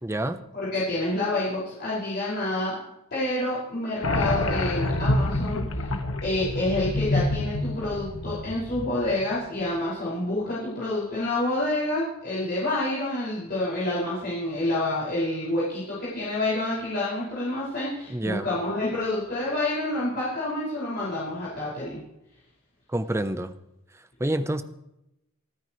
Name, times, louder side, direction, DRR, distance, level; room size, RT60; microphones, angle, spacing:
voice 1, 0.0-0.4 18.1-18.5 22.9-23.5 24.2-24.6, right 1 dB, 15° right, 10 dB, 0.7 m, -27 dB
voice 2, 0.5-2.8 3.1-5.9 6.2-22.0, left 1 dB, 50° left, -9 dB, 5.8 m, -28 dB
sound 1, 4.0-9.3, left 1 dB, 80° left, 1.3 m, -27 dB
28.0 x 9.7 x 3.2 m, 0.87 s
head